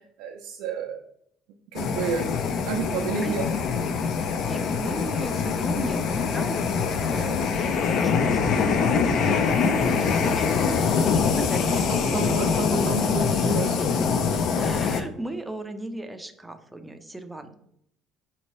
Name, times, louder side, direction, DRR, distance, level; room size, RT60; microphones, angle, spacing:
voice 1, 0.2-1.0 1.7-2.3 2.6-3.5 11.7-13.8, right 5 dB, 90° right, 2 dB, 0.4 m, -30 dB
sound 1, 1.7-15.0, left 5 dB, 55° left, 0.4 m, -24 dB
voice 2, 4.4-12.7 14.6-17.6, right 1 dB, 5° right, 7 dB, 0.4 m, -37 dB
5.2 x 2.8 x 3.1 m, 0.73 s
cardioid pair, 130°, 0 cm